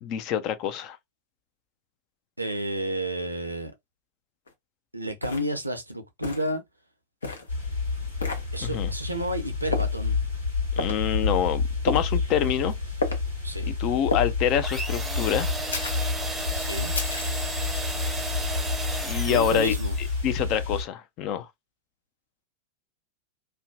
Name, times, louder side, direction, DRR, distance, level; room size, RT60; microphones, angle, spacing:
voice 1, 0.0-1.0 8.6-8.9 10.8-12.7 13.7-15.5 19.0-19.8 20.2-21.5, left 9 dB, 40° left, 0.4 m, -26 dB
voice 2, 2.4-3.7 4.9-6.6 8.5-10.2 13.4-13.7 16.5-16.9 19.2-20.0, right 1 dB, 85° right, 0.5 m, -31 dB
sound 1, 4.5-4.6 5.2-5.5 6.2-6.5 7.2-7.5 8.2-8.4 9.7-10.0 10.8-11.0 11.9-12.2 13.0-13.2 14.1-14.3 15.7-16.1 16.9-17.4, left 2 dB, 70° left, 0.7 m, -30 dB
sound 2, 7.5-20.8, left 4 dB, 85° left, 1.5 m, -29 dB
sound 3, 14.6-20.2, right 2 dB, 10° right, 0.6 m, -34 dB
2.5 x 2.2 x 2.3 m
figure-of-eight pair, 90°, 0 cm